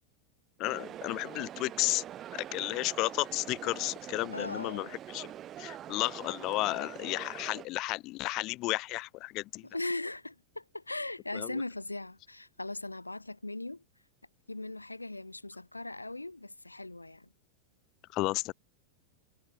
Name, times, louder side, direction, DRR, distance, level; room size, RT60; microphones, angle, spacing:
voice 1, 0.6-2.0 2.3-5.3 5.6-9.7 11.3-11.6 18.1-18.5, left 20 dB, 40° left, 0.7 m, -33 dB
sound 1, 0.6-7.7, right 11 dB, 30° right, 7.7 m, -44 dB
voice 2, 4.3-4.9 9.6-13.8 14.5-17.3, left 2 dB, 85° left, 1.8 m, -39 dB
figure-of-eight pair, 90°, 0 cm